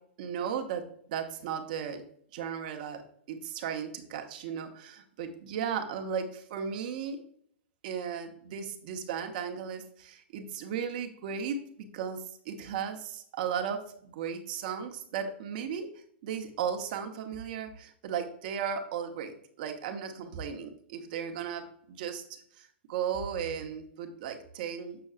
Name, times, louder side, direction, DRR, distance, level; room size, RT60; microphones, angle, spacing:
voice 1, 0.2-2.0 2.3-3.0 3.3-7.2 7.8-15.9 16.2-25.0, right 7 dB, 50° right, 6 dB, 1.0 m, -36 dB
6.8 x 6.3 x 2.5 m, 0.65 s
figure-of-eight pair, 110°, 6 cm